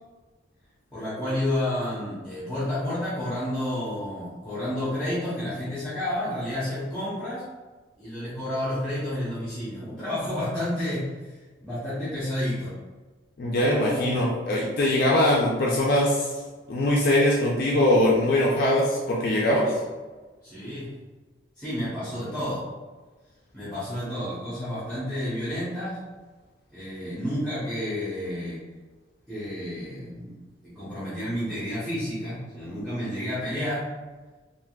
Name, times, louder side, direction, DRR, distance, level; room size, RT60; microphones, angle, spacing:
voice 1, 0.9-7.4 8.0-12.7 13.6-14.0 19.6-19.7 20.4-20.9 21.6-22.6 23.5-26.0 26.7-28.6 29.3-33.9, left 1 dB, 5° left, -11 dB, 0.8 m, -30 dB
voice 2, 13.4-16.4 16.7-19.7, left 1 dB, 50° left, -4 dB, 0.4 m, -22 dB
3.4 x 2.5 x 2.3 m, 1.3 s
head